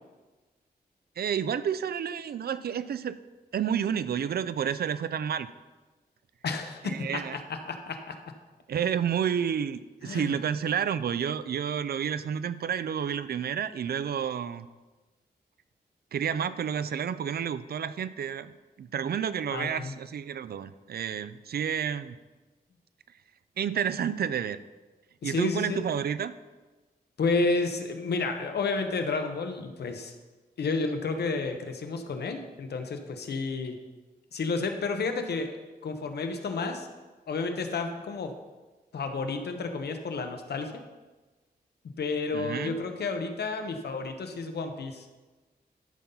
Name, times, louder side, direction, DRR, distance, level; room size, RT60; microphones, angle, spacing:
voice 1, 1.2-3.2 3.5-5.5 6.8-7.4 8.7-14.7 16.1-22.2 23.6-24.6 25.2-26.3 42.3-42.8, right 8 dB, 70° right, 14 dB, 0.4 m, -30 dB
voice 2, 6.4-8.2 10.0-10.3 19.5-19.9 25.2-25.8 27.2-30.1 30.6-33.8 34.3-35.5 35.8-36.9 37.3-38.3 38.9-40.8 42.0-45.1, left 3 dB, 85° left, 6 dB, 0.9 m, -31 dB
13.0 x 5.6 x 3.9 m, 1.2 s
wide cardioid pair, 115°, 17 cm